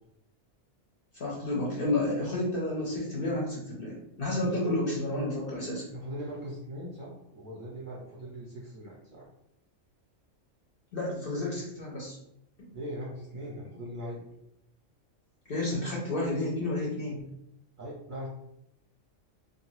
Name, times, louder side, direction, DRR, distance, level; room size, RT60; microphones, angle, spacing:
voice 1, 1.1-5.9 10.9-12.2 15.5-17.3, left 1 dB, 55° left, -4 dB, 0.7 m, -31 dB
voice 2, 4.4-4.7 5.9-9.3 12.7-14.2 17.8-18.3, equal, 50° right, -5 dB, 0.7 m, -40 dB
2.5 x 2.3 x 3.0 m, 0.79 s
omnidirectional pair, 1.4 m